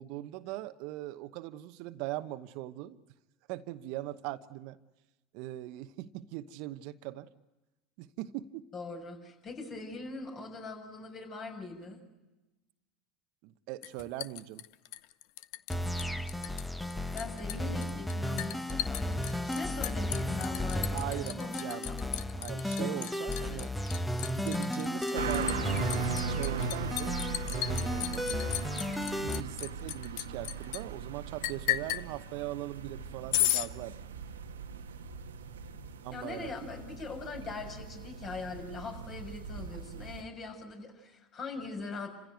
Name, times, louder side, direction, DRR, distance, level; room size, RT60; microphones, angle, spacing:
voice 1, 0.0-3.0 3.5-4.8 5.3-7.3 8.0-8.6 13.4-14.6 20.9-21.9 22.3-23.7 24.3-27.2 27.5-28.6 29.2-34.0 36.0-36.5, right 15 dB, 65° right, 11 dB, 1.0 m, -40 dB
voice 2, 8.7-12.0 17.1-22.1 22.8-22.9 23.4-23.6 36.1-42.1, left 3 dB, 45° left, 3 dB, 6.9 m, -41 dB
Liquid, 13.8-15.7 16.0-16.6 16.9-30.8 31.4-32.1 33.3-33.7, left 15 dB, 65° left, 0.7 m, -35 dB
sound 1, 15.7-29.4, left 1 dB, 5° left, 1.2 m, -34 dB
sound 2, 25.1-40.2, right 5 dB, 85° right, 1.3 m, -39 dB
29.5 x 16.0 x 9.3 m, 1.1 s
hypercardioid pair, 80°, 0 cm